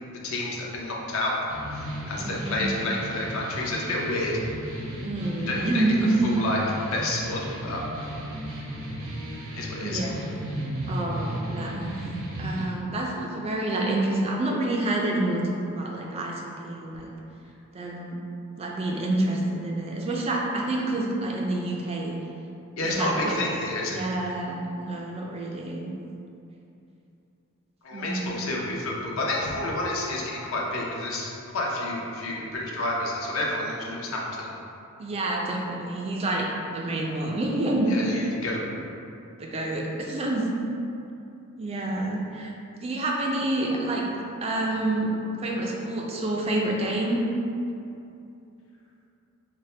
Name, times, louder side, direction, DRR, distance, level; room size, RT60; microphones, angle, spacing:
voice 1, 0.2-1.4 2.1-4.4 5.4-5.8 6.2-7.8 9.6-10.1 22.8-24.3 27.8-34.5 37.9-38.6, left 2 dB, 65° left, -2 dB, 0.6 m, -29 dB
sound 1, 1.5-12.6, equal, 75° right, 0.7 m, -35 dB
voice 2, 2.2-2.8 5.0-6.2 9.8-10.5 10.9-11.9 12.4-17.1 17.7-18.2 18.6-22.2 22.8-25.9 27.9-28.5 35.0-37.9 39.4-40.5 41.6-42.5 42.8-44.1 44.4-47.2, right 2 dB, 30° right, -1 dB, 0.3 m, -28 dB
4.1 x 2.1 x 3.2 m, 2.7 s
head